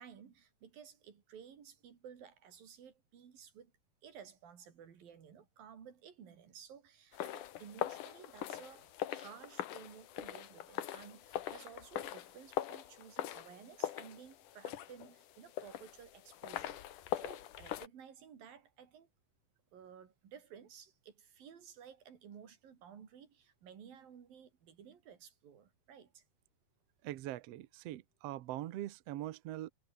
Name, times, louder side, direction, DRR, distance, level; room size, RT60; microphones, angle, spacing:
voice 1, 0.0-3.7 4.0-16.8 17.1-19.1 19.7-26.2, right 8 dB, 70° right, 4.7 m, -55 dB
sound 1, 7.1-17.9, left 12 dB, 65° left, 2.6 m, -42 dB
voice 2, 27.0-29.7, right 14 dB, 85° right, 1.4 m, -42 dB
omnidirectional pair, 4.2 m